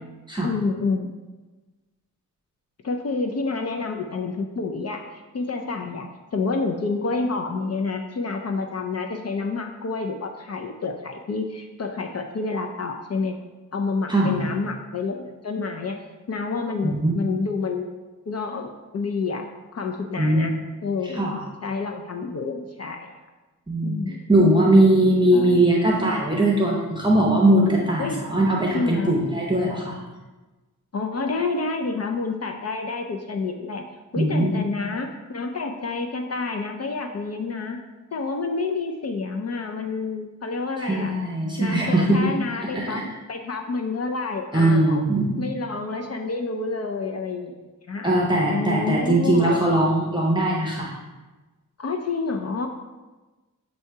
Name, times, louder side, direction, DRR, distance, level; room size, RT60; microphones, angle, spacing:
voice 1, 0.4-1.1 2.8-13.4 13.7-16.0 16.3-17.9 18.3-19.5 19.7-20.5 20.8-21.3 21.6-23.1 23.8-24.3 25.3-25.6 26.3-26.6 28.0-28.4 28.7-29.2 30.9-33.8 34.1-37.8 38.1-41.1 41.6-43.0 43.3-45.0 45.4-47.5 47.9-48.1 48.5-49.6 51.8-52.7, left 4 dB, 50° left, 3 dB, 0.5 m, -28 dB
voice 2, 14.1-14.5 16.8-17.2 20.2-20.5 21.0-21.4 23.7-24.0 24.3-30.0 34.1-34.6 40.8-42.3 42.6-43.0 44.5-45.4 48.0-50.9, right 1 dB, 15° right, -3 dB, 0.7 m, -20 dB
7.6 x 2.7 x 4.5 m, 1.2 s
wide cardioid pair, 125°, 33 cm